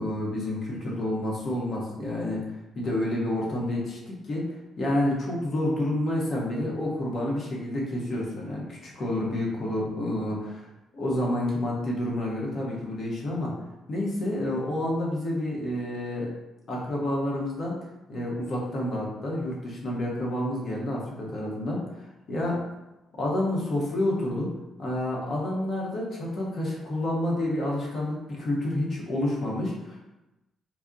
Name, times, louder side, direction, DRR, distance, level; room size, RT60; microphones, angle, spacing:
voice 1, 0.0-2.5 2.7-4.5 4.8-10.7 10.9-13.5 13.9-16.3 16.7-17.7 18.1-22.0 22.3-22.6 23.1-24.5 24.8-30.0, left 1 dB, 50° left, -3 dB, 0.8 m, -29 dB
2.3 x 2.0 x 3.7 m, 0.99 s
hypercardioid pair, 50°, 0 cm